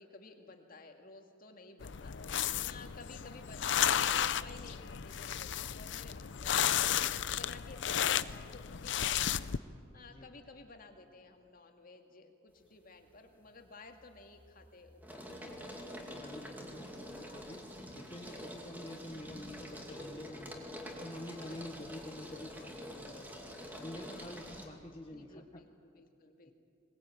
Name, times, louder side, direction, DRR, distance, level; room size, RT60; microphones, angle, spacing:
voice 1, 0.0-9.4 9.9-17.0 18.2-18.4 21.5-21.6 24.2-24.3 25.1-26.5, left 3 dB, 45° left, 4 dB, 2.1 m, -55 dB
sound 1, 1.8-9.6, left 10 dB, 60° left, 0.6 m, -33 dB
sound 2, 12.6-13.1 13.5-24.7, equal, 10° right, 2.4 m, -47 dB
voice 2, 16.0-25.6 26.5-26.6, left 1 dB, 25° left, 1 dB, 1.2 m, -48 dB
21.5 x 20.0 x 9.0 m, 2.4 s
head